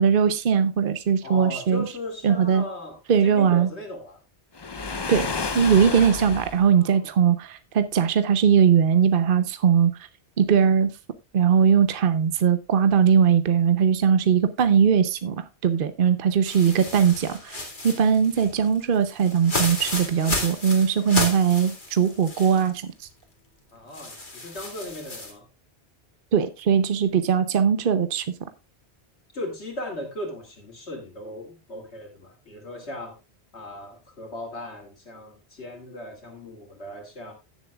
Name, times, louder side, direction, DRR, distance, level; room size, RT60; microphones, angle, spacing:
voice 1, 0.0-1.9 2.2-2.6 3.1-3.7 5.1-5.3 5.5-9.9 10.4-10.9 11.3-17.6 17.8-22.9 26.3-28.2, right 7 dB, 55° right, 0.9 m, -20 dB
voice 2, 1.2-4.2 6.7-7.1 16.0-16.1 23.7-25.5 29.3-33.2 33.5-37.3, left 1 dB, 80° left, 2.8 m, -37 dB
Waves surf, 4.5-6.7, left 4 dB, 30° left, 0.6 m, -30 dB
sound 1, 16.5-22.7 23.1-23.2 23.9-25.3, left 2 dB, 45° left, 2.3 m, -32 dB
16.5 x 7.2 x 2.3 m
omnidirectional pair, 1.1 m